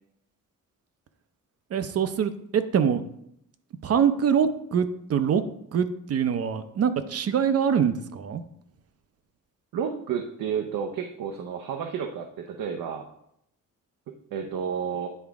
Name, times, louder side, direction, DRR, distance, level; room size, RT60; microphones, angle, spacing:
voice 1, 1.7-3.0 3.8-5.4 5.7-8.4, right 7 dB, 45° right, 11 dB, 0.6 m, -24 dB
voice 2, 9.7-13.1 14.3-15.1, right 7 dB, 80° right, 3 dB, 0.7 m, -31 dB
9.5 x 4.8 x 3.5 m, 0.75 s
cardioid pair, 140°, 33 cm